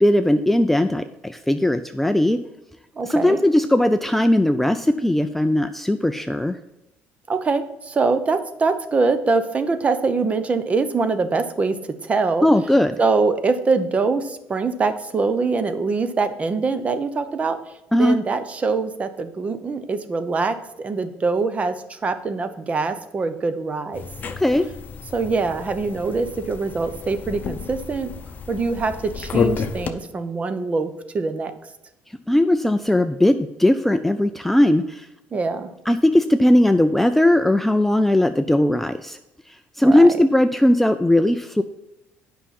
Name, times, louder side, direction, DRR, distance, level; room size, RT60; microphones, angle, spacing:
voice 1, 0.0-2.4 3.0-6.6 12.4-13.0 17.9-18.2 24.2-24.7 32.3-35.1 35.9-39.2 39.5-41.6, left 1 dB, 5° left, 8 dB, 0.3 m, -18 dB
voice 2, 3.0-3.4 7.3-11.8 12.0-12.5 13.0-17.6 18.0-24.0 25.1-28.1 28.5-31.5 35.3-35.7 39.8-40.1, right 4 dB, 30° right, 11 dB, 0.7 m, -23 dB
sound 1, 23.9-29.9, left 6 dB, 40° left, 0.8 m, -30 dB
8.7 x 5.6 x 5.7 m, 0.93 s
cardioid pair, 115°, 5 cm